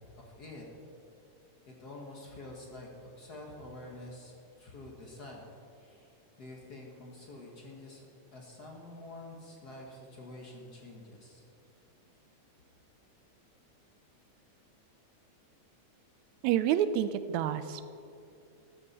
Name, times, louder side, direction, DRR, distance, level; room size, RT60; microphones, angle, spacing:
voice 1, 0.2-0.7 1.6-6.1 6.4-11.4, left 2 dB, 45° left, -1 dB, 1.4 m, -48 dB
voice 2, 16.4-17.8, right 10 dB, 85° right, 12 dB, 1.9 m, -28 dB
13.5 x 12.5 x 4.2 m, 2.6 s
omnidirectional pair, 3.3 m